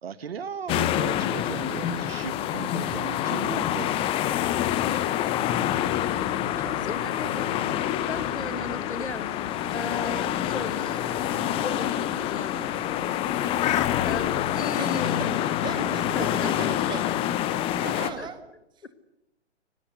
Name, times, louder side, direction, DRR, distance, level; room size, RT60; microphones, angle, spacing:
voice 1, 0.0-3.9 6.4-6.8, right 6 dB, 55° right, 16 dB, 1.4 m, -37 dB
sound 1, 0.7-18.1, left 12 dB, 15° left, 1.0 m, -27 dB
sound 2, 1.0-18.3, right 7 dB, 40° right, 3.4 m, -47 dB
voice 2, 6.8-7.7 8.1-9.3 9.7-11.0 11.3-13.6 14.0-15.3 15.8-16.5 18.2-18.3, left 4 dB, 70° left, 11 dB, 2.3 m, -36 dB
sound 3, 9.1-14.3, left 11 dB, 35° left, 2.0 m, -36 dB
voice 3, 15.6-17.1 17.8-18.4, right 7 dB, 10° right, 11 dB, 1.6 m, -37 dB
24.0 x 20.0 x 8.2 m, 0.88 s
figure-of-eight pair, 125°, 35 cm